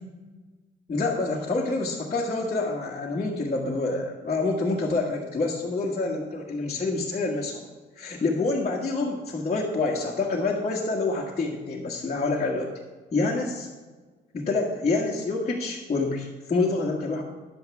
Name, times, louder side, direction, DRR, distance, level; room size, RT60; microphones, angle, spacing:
voice 1, 0.9-7.6 8.0-12.7 13.1-13.7 14.3-17.2, left 3 dB, 35° left, -5 dB, 1.5 m, -27 dB
10.0 x 7.9 x 3.5 m, 1.3 s
supercardioid pair, 70°, 20 cm